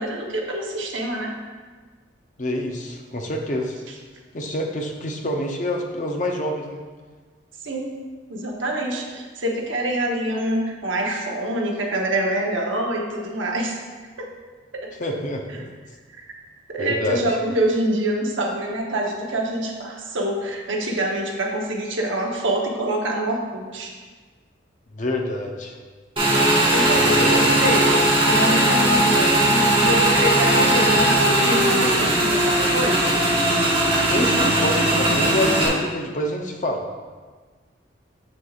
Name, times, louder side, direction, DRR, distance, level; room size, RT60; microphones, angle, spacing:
voice 1, 0.0-1.3 7.6-7.9 8.3-13.7 16.2-16.3 16.7-23.9 26.7-27.9 28.2-33.1 33.5-33.7, right 1 dB, 80° right, 0 dB, 1.0 m, -25 dB
voice 2, 2.4-3.8 4.3-6.8 15.0-15.7 16.8-17.2 24.9-25.8 26.9-27.6 34.1-36.9, left 1 dB, 40° left, 2 dB, 0.6 m, -27 dB
Motorcycle / Engine, 26.2-35.7, right 1 dB, 25° right, 1.2 m, -18 dB
7.3 x 6.4 x 2.4 m, 1.4 s
head